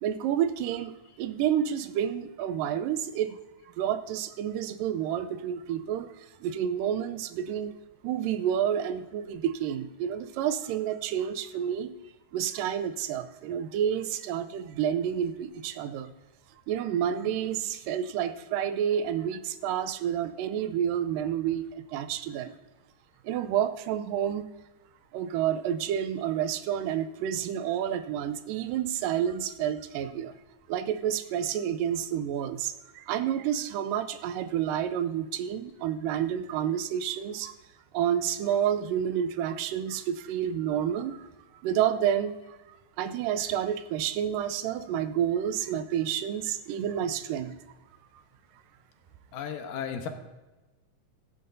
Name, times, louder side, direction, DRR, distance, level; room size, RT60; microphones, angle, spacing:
voice 1, 0.0-3.4 3.8-6.1 6.4-7.7 8.0-11.9 12.3-16.1 16.7-22.5 23.2-24.5 25.1-30.3 30.7-37.5 37.9-41.3 41.6-42.6 43.0-47.5, right 9 dB, 90° right, 12 dB, 2.3 m, -29 dB
voice 2, 49.3-50.1, left 7 dB, 90° left, 6 dB, 2.7 m, -34 dB
16.5 x 9.5 x 2.6 m, 1.1 s
omnidirectional pair, 3.8 m